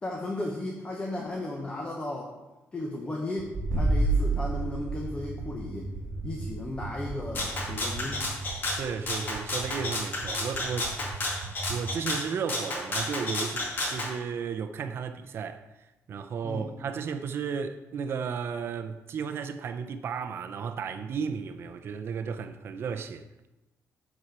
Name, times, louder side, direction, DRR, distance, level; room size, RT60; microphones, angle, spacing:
voice 1, 0.0-2.3 2.7-5.9 6.2-8.2 16.4-16.7, left 2 dB, 20° left, 1.0 m, -35 dB
sound 1, 3.4-11.8, right 5 dB, 85° right, 1.2 m, -40 dB
sound 2, 3.5-9.1, right 2 dB, 10° right, 1.8 m, -31 dB
Rattle (instrument), 7.3-14.1, left 2 dB, 40° left, 1.8 m, -32 dB
voice 2, 8.6-10.9 11.7-15.6 16.1-23.3, right 6 dB, 50° right, 0.5 m, -34 dB
11.5 x 4.3 x 4.7 m
cardioid pair, 160°, 5 cm